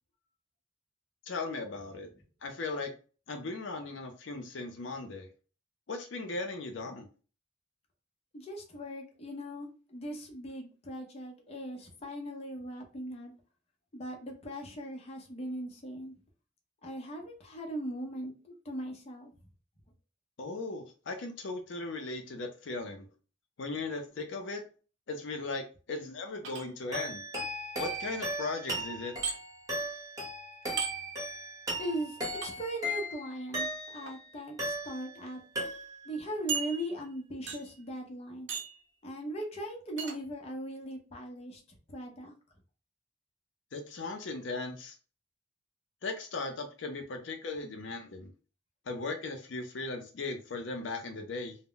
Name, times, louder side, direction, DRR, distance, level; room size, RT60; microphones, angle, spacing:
voice 1, 1.3-2.1 2.4-2.9 3.3-5.3 5.9-7.1 20.4-23.1 23.6-24.6 25.1-27.2 27.8-29.2 43.7-45.0 46.0-48.3 48.9-51.6, left 3 dB, 85° left, 5 dB, 0.5 m, -37 dB
voice 2, 8.3-13.3 13.9-16.1 16.8-19.3 31.8-35.4 36.1-38.5 39.0-42.3, right 1 dB, 35° left, 1 dB, 0.6 m, -39 dB
sound 1, 26.4-27.1 29.2-29.4 30.8-30.9 32.4-32.5 33.9-34.1 34.9-35.0 35.3-35.4 36.5-37.1 37.5-37.8 38.5-38.8 40.0-40.2, right 6 dB, 85° right, 0.7 m, -36 dB
sound 2, 26.9-34.2 34.6-35.3 35.6-36.2, right 1 dB, 20° right, 0.9 m, -37 dB
2.1 x 2.0 x 3.7 m, 0.36 s
head